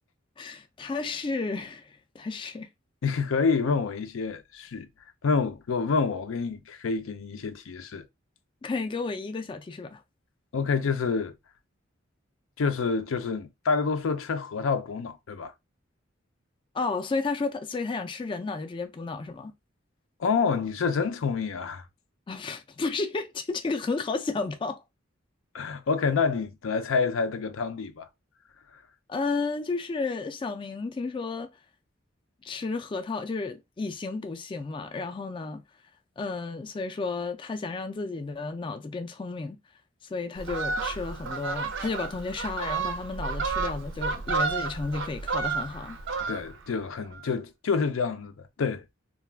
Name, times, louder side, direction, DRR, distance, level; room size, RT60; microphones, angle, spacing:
voice 1, 0.4-2.7 8.6-10.0 16.7-19.5 22.3-24.8 29.1-31.5 32.4-35.6 36.2-39.6 40.1-46.0, left 3 dB, 25° left, 0.3 m, -32 dB
voice 2, 3.0-4.9 5.2-8.1 10.5-11.3 12.6-15.5 20.2-21.8 25.5-28.1 46.3-49.0, left 5 dB, 85° left, 0.5 m, -28 dB
Fowl, 40.4-46.7 47.0-47.3, right 4 dB, 65° right, 0.5 m, -31 dB
2.3 x 2.2 x 3.3 m
head